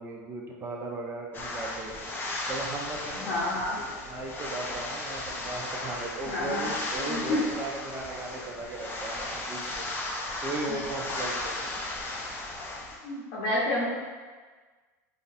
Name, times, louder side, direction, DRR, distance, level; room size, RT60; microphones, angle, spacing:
voice 1, 0.0-2.1 2.5-3.4 3.8-9.9 10.4-11.6, right 2 dB, 25° right, 0 dB, 0.6 m, -37 dB
sound 1, 1.3-13.0, left 2 dB, 25° left, 0.5 m, -35 dB
voice 2, 3.1-3.8 6.3-6.7 7.0-7.4 10.7-10.8 13.0-13.9, left 1 dB, 55° left, -6 dB, 0.8 m, -29 dB
3.9 x 2.1 x 2.6 m, 1.4 s
hypercardioid pair, 100°, 9 cm